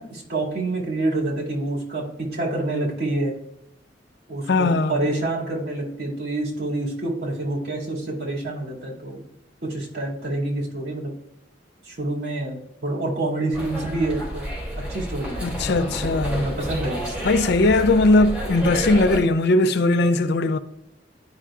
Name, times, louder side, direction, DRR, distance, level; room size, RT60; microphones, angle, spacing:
voice 1, 0.0-3.3 4.3-9.2 9.6-11.1 11.8-14.5 14.9-15.4 16.4-17.2, right 2 dB, 60° right, 2.3 m, -27 dB
voice 2, 4.5-4.9 15.4-16.5 17.2-20.6, left 2 dB, 65° left, 0.5 m, -19 dB
sound 1, 13.5-19.2, equal, 5° right, 2.9 m, -30 dB
11.5 x 5.5 x 2.4 m
head